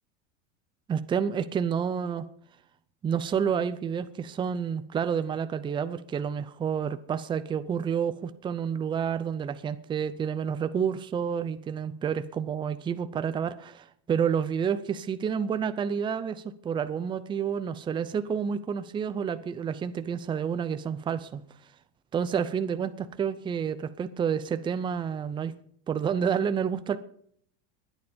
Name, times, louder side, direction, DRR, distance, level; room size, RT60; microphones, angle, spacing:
voice 1, 0.9-2.3 3.0-21.4 22.1-25.5 25.9-27.0, right 7 dB, 15° right, 12 dB, 0.6 m, -29 dB
20.5 x 9.6 x 5.2 m, 0.64 s
supercardioid pair, 150°, 36 cm